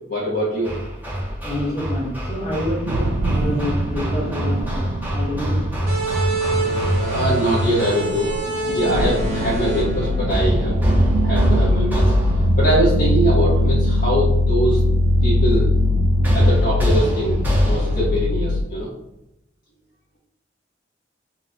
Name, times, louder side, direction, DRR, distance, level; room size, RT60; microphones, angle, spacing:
voice 1, 0.1-0.7 7.0-8.3 8.7-10.8 11.2-12.1 12.6-14.8 15.2-15.7 16.3-18.9, right 1 dB, 50° left, -7 dB, 0.7 m, -22 dB
Hammer, 0.6-8.1 10.3-12.7 16.2-18.2, equal, 10° right, 0.6 m, -24 dB
voice 2, 1.4-5.6 6.4-6.5, left 1 dB, 35° left, -5 dB, 1.1 m, -28 dB
sound 1, 2.9-18.6, left 1 dB, 70° right, 0.3 m, -21 dB
sound 2, 5.9-11.1, right 1 dB, 50° right, 0.8 m, -27 dB
2.8 x 2.1 x 3.6 m, 0.87 s
head